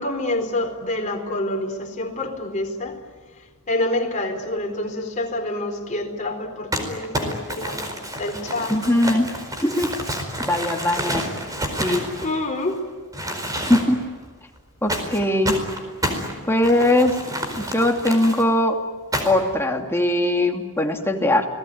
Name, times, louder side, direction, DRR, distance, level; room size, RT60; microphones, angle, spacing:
voice 1, 0.0-3.0 3.7-7.9 8.2-9.0 12.2-12.8, left 1 dB, 35° left, 3 dB, 4.2 m, -27 dB
Crumpling crinkling, 6.7-12.7 13.1-14.1 14.9-18.4 19.1-19.5, equal, 15° right, 4.6 m, -29 dB
voice 2, 8.7-9.3 9.6-9.9 10.4-11.2 11.8-12.0 13.7-14.0 14.8-15.6 16.5-17.1 17.6-18.8 19.2-21.5, left 1 dB, 10° left, 2 dB, 2.6 m, -20 dB
29.5 x 20.0 x 9.5 m, 1.5 s
head